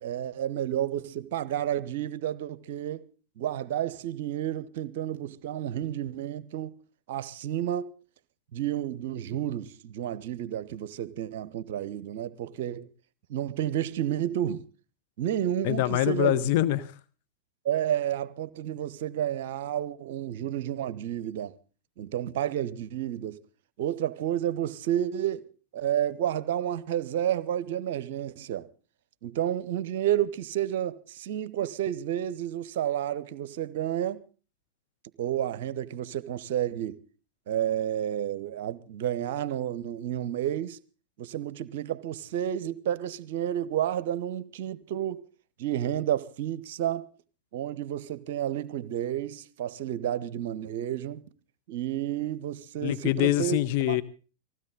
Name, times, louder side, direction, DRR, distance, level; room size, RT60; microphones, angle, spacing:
voice 1, 0.0-3.1 3.4-6.7 7.1-7.9 8.5-12.9 13.3-14.6 15.2-16.4 17.6-21.6 22.0-23.4 23.8-25.5 25.7-28.7 29.2-34.2 35.2-36.9 37.5-40.8 41.2-45.2 45.6-47.1 47.5-51.2 51.7-53.6 53.9-54.0, right 11 dB, 55° right, 0.8 m, -31 dB
voice 2, 15.6-16.9 52.8-54.0, left 14 dB, 50° left, 0.7 m, -24 dB
19.5 x 16.0 x 3.8 m
figure-of-eight pair, 90°, 0 cm